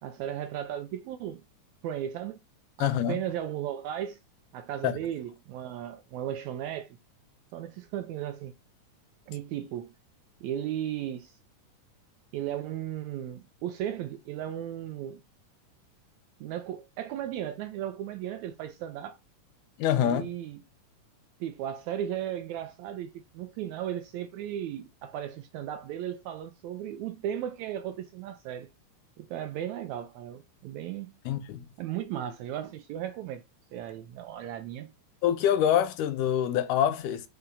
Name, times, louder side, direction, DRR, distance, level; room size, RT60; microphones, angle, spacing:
voice 1, 0.0-1.4 1.8-2.4 2.8-4.2 4.5-7.0 7.5-8.5 9.3-9.9 10.4-11.4 12.3-15.2 16.4-19.2 20.0-20.6 21.4-28.7 29.2-31.1 31.8-33.4 33.7-34.9, right 11 dB, 80° right, 1.7 m, -35 dB
voice 2, 2.8-3.2 4.8-5.0 19.8-20.3 31.3-31.7 35.2-37.2, left 10 dB, 85° left, 2.3 m, -25 dB
5.7 x 3.4 x 5.3 m
omnidirectional pair, 3.7 m